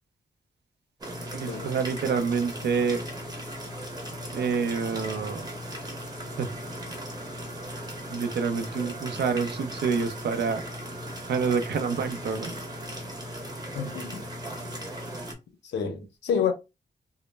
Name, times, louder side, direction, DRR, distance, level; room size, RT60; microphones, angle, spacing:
sound 1, 1.0-15.3, equal, 20° right, 0.7 m, -37 dB
voice 1, 1.3-3.0 4.3-5.5 6.4-6.5 8.1-10.6 11.3-12.7, right 5 dB, 70° right, 0.5 m, -27 dB
voice 2, 13.8-14.3 15.6-16.5, left 7 dB, 80° left, 0.5 m, -28 dB
2.1 x 2.0 x 3.1 m
wide cardioid pair, 130°, 18 cm